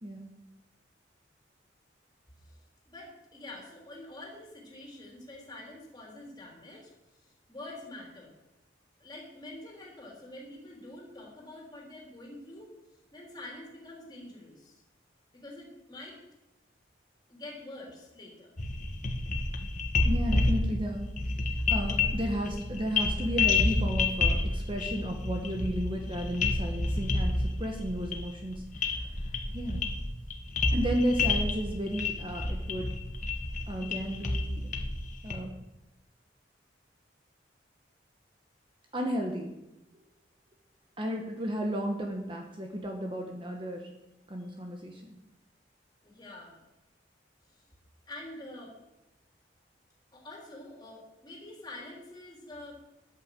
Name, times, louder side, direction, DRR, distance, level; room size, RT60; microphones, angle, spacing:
voice 1, 2.9-6.9 7.2-8.3 9.0-12.7 13.1-14.8 15.3-16.2 17.3-18.5 46.0-46.6 47.6-47.7 48.1-48.7 50.1-52.7, left 1 dB, 20° left, -2 dB, 3.3 m, -46 dB
sound 1, 18.6-35.3, left 3 dB, 45° left, 1.5 m, -29 dB
voice 2, 20.0-29.3 29.5-29.8 30.7-32.9 33.7-34.7 35.2-35.5 38.9-39.5 41.0-43.9 44.3-45.1, equal, 25° right, 2 dB, 1.3 m, -33 dB
10.0 x 9.0 x 7.6 m, 0.96 s
head